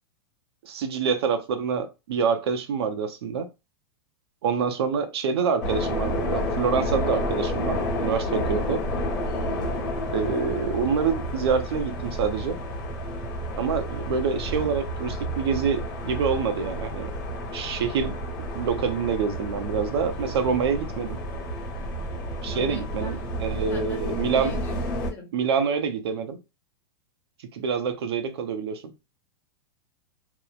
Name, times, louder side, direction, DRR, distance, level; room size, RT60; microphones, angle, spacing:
voice 1, 0.6-3.5 4.4-8.8 10.1-12.6 13.6-17.1 17.5-18.1 18.5-21.2 22.4-24.6 25.3-26.4 27.5-28.9, right 6 dB, 75° right, 0.6 m, -26 dB
sound 1, 5.6-25.1, equal, 30° left, 1.0 m, -30 dB
voice 2, 22.4-23.2 23.7-25.4, left 4 dB, 15° left, 0.6 m, -42 dB
2.9 x 2.1 x 2.4 m
supercardioid pair, 165°, 13 cm